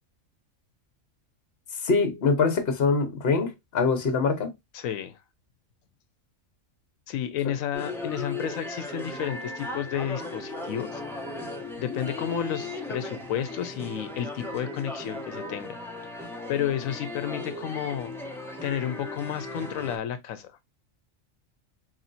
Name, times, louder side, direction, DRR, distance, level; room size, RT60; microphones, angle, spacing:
voice 1, 1.8-4.5, left 4 dB, 50° left, 1.1 m, -24 dB
voice 2, 4.7-5.2 7.1-11.0 11.8-15.8 16.5-18.1 18.6-20.5, left 9 dB, 85° left, 1.0 m, -31 dB
sound 1, 7.7-20.0, left 2 dB, ahead, 0.8 m, -37 dB
4.2 x 3.0 x 2.6 m
omnidirectional pair, 1.4 m